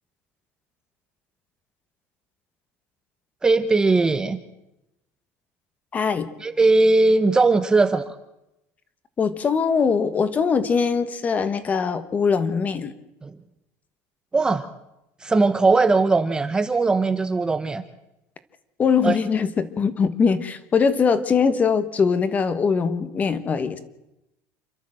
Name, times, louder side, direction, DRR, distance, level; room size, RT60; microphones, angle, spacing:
voice 1, 3.4-4.4 6.4-8.2 13.2-13.3 14.3-14.7 15.2-17.8 19.0-19.2, right 3 dB, 10° right, 9 dB, 0.7 m, -19 dB
voice 2, 5.9-6.3 9.2-12.9 18.8-23.8, left 5 dB, 20° left, 13 dB, 1.3 m, -22 dB
28.5 x 12.5 x 7.7 m, 0.90 s
cardioid pair, 165°, 7 cm